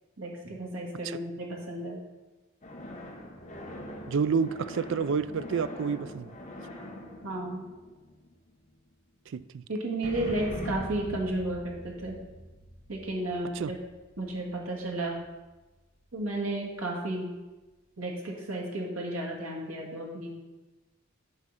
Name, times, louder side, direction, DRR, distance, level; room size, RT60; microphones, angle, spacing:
voice 1, 0.2-2.0 7.2-7.6 9.7-12.2 12.9-13.8 14.2-15.2 16.1-17.3 18.0-20.3, right 1 dB, 90° right, 1.9 m, -33 dB
sound 1, 2.6-8.6 10.0-15.3, left 1 dB, 35° left, 1.2 m, -42 dB
voice 2, 4.1-6.3 9.3-9.6 13.5-13.7, right 6 dB, 60° right, 0.3 m, -29 dB
10.5 x 3.8 x 5.6 m
head